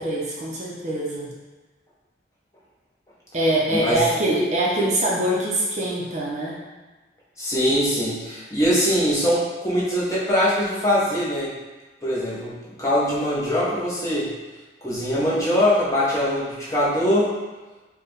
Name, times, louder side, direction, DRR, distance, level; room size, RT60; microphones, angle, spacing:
voice 1, 0.0-1.3 3.3-6.6, right 1 dB, 40° right, -4 dB, 0.6 m, -23 dB
voice 2, 3.7-4.0 7.4-11.5 12.0-14.3 14.8-17.4, equal, 15° left, -7 dB, 0.8 m, -22 dB
4.4 x 2.2 x 3.3 m, 1.2 s
head